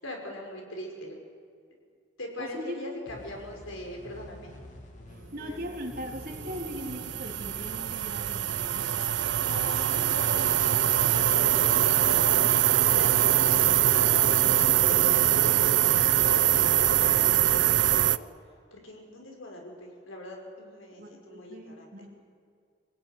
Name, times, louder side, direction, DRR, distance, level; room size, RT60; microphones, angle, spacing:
voice 1, 0.0-1.2 2.2-4.5 5.4-5.6 9.4-12.2 12.8-18.3 18.7-21.9, left 1 dB, 85° left, 1 dB, 5.4 m, -41 dB
voice 2, 2.4-2.8 5.1-8.9 21.0-22.1, equal, 45° right, 1 dB, 3.6 m, -39 dB
sound 1, 3.1-16.4, left 1 dB, 35° left, 2.6 m, -48 dB
sound 2, 6.0-18.2, right 12 dB, 65° right, 0.5 m, -23 dB
26.0 x 16.5 x 9.8 m, 2.2 s
head